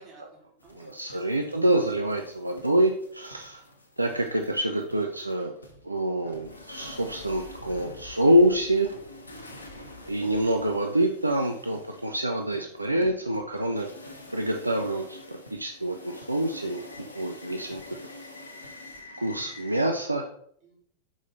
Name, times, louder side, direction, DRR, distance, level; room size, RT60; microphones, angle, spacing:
voice 1, 0.0-1.4 17.9-18.7 20.6-20.7, right 3 dB, 40° right, -3 dB, 3.0 m, -56 dB
sound 1, 0.6-19.8, left 2 dB, 80° left, 1.1 m, -47 dB
voice 2, 0.7-3.6 4.0-5.5 5.8-8.9 10.1-13.9 14.3-17.8 19.2-20.3, right 1 dB, 85° right, 3 dB, 0.5 m, -26 dB
6.3 x 5.1 x 3.9 m, 0.65 s
figure-of-eight pair, 90°, 0 cm